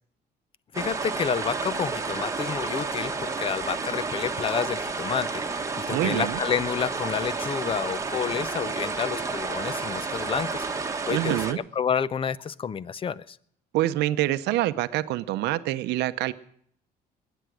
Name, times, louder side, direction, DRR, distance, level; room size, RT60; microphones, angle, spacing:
voice 1, 0.7-10.7 11.1-13.4, left 7 dB, 30° left, 19 dB, 0.6 m, -29 dB
sound 1, 0.7-11.5, right 4 dB, 20° right, 1.3 m, -31 dB
voice 2, 5.9-6.4 11.1-11.6 13.7-16.3, right 15 dB, 85° right, 12 dB, 0.7 m, -26 dB
21.0 x 9.1 x 6.3 m, 0.65 s
cardioid pair, 110°, 17 cm